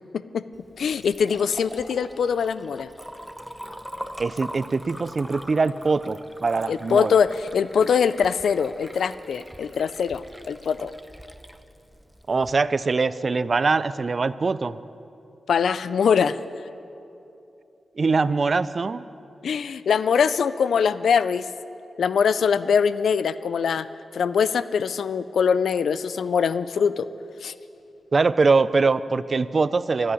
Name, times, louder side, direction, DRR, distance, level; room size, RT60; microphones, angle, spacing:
Liquid, 0.5-12.5, equal, ahead, 0.7 m, -42 dB
voice 1, 0.8-2.9 6.7-10.9 15.5-16.4 19.4-21.5 22.0-23.9 24.1-27.1 27.4-27.5, left 6 dB, 80° left, 15 dB, 0.4 m, -22 dB
voice 2, 4.2-7.2 12.3-14.8 18.0-19.0 28.1-30.1, right 4 dB, 45° right, 16 dB, 0.4 m, -22 dB
13.5 x 8.7 x 9.6 m, 2.8 s
cardioid pair, 70°, 0 cm